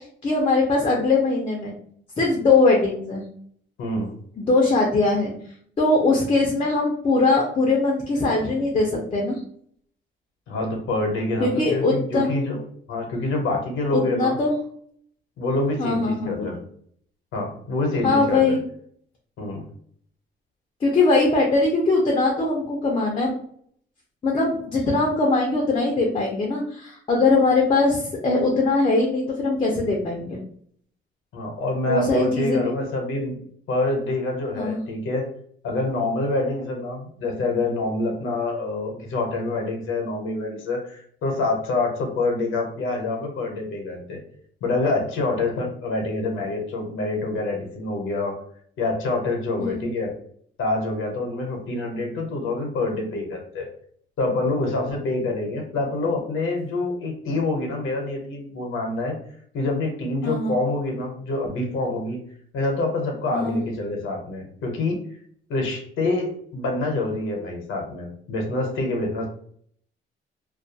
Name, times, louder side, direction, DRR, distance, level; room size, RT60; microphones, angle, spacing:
voice 1, 0.2-1.7 2.2-3.2 4.4-5.3 5.8-9.4 11.4-12.3 13.9-14.5 15.8-16.5 18.0-18.6 20.8-23.4 24.2-30.4 31.9-32.7 34.6-34.8 49.6-49.8 60.2-60.6 63.3-63.6, left 3 dB, 25° left, 0 dB, 0.5 m, -21 dB
voice 2, 3.8-4.1 10.5-12.6 12.9-14.4 15.4-16.6 17.3-18.6 19.4-19.7 31.3-33.4 33.7-35.3 35.6-44.2 44.6-48.4 48.8-50.1 50.6-53.7 54.2-59.2 59.5-62.2 62.5-65.0 65.5-69.3, left 2 dB, 90° left, 2 dB, 0.7 m, -26 dB
2.3 x 2.2 x 2.6 m, 0.62 s
cardioid pair, 140°, 21 cm